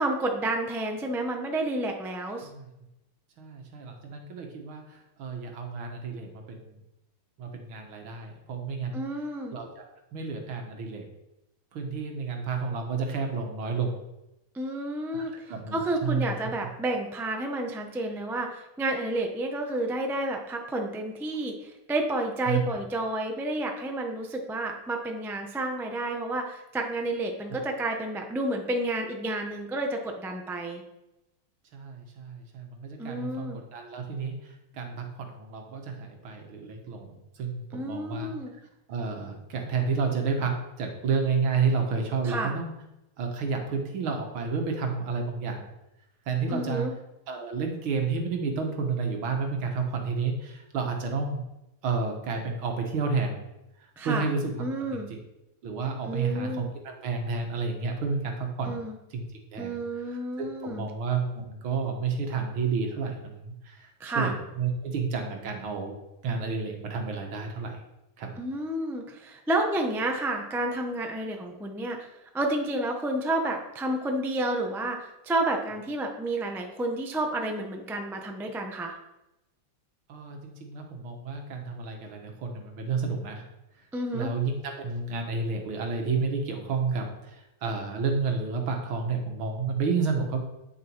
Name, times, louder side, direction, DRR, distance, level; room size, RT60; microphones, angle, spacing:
voice 1, 0.0-2.5 8.9-9.5 14.5-30.8 33.0-33.6 37.7-38.5 42.2-42.5 46.5-46.9 54.0-54.2 54.6-55.1 56.1-56.7 58.7-59.0 59.6-60.8 64.0-64.3 68.4-79.0 83.9-84.3, right 1 dB, 5° right, 2 dB, 0.4 m, -30 dB
voice 2, 3.4-6.8 7.4-9.0 9.5-11.1 11.7-14.0 15.1-16.3 22.4-22.6 27.5-27.6 31.7-38.3 38.9-42.7 43.2-45.7 46.3-46.9 47.3-51.4 51.8-53.4 53.8-54.5 54.9-55.0 55.6-58.8 59.1-59.2 59.5-59.8 60.4-65.9 66.2-67.8 68.2-68.3 80.1-83.5 83.8-83.9 84.1-90.4, right 5 dB, 70° right, 3 dB, 2.2 m, -31 dB
9.3 x 7.1 x 4.6 m, 0.92 s
omnidirectional pair, 2.4 m